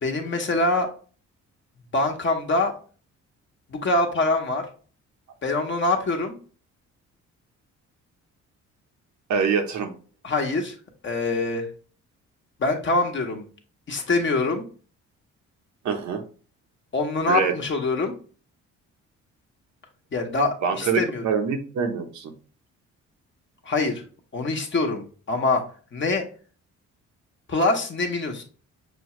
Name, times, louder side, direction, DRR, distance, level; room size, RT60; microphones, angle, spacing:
voice 1, 0.0-0.9 1.9-2.7 3.7-4.6 5.4-6.4 10.2-10.7 11.0-11.7 12.6-13.5 13.9-14.6 16.9-18.1 20.1-21.2 23.6-24.0 24.3-25.6 25.9-26.2 27.5-28.4, left 2 dB, 40° left, 2 dB, 1.1 m, -24 dB
voice 2, 9.3-9.9 15.8-16.2 17.3-17.5 20.6-22.3, right 6 dB, 70° right, 4 dB, 0.9 m, -25 dB
6.1 x 2.3 x 3.0 m, 0.39 s
cardioid pair, 90°, 30 cm